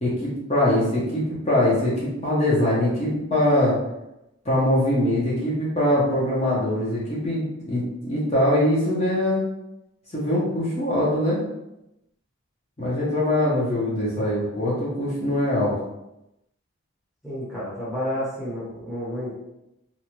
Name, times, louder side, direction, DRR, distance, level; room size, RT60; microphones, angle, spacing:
voice 1, 0.0-3.7 4.4-9.4 10.1-11.4 12.8-15.7, left 1 dB, 30° left, -7 dB, 0.8 m, -22 dB
voice 2, 17.2-19.4, equal, ahead, -10 dB, 0.8 m, -30 dB
2.6 x 2.2 x 3.0 m, 0.89 s
head